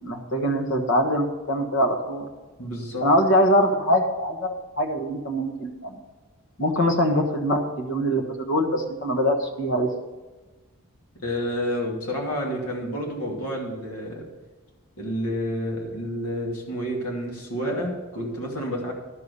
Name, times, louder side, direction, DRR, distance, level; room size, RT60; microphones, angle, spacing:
voice 1, 0.0-2.3 3.0-6.0 6.6-9.9, equal, 55° left, 3 dB, 1.4 m, -23 dB
voice 2, 2.6-3.1 11.1-14.3 15.0-18.9, equal, 80° left, -1 dB, 2.7 m, -29 dB
12.0 x 6.6 x 5.5 m, 1.2 s
head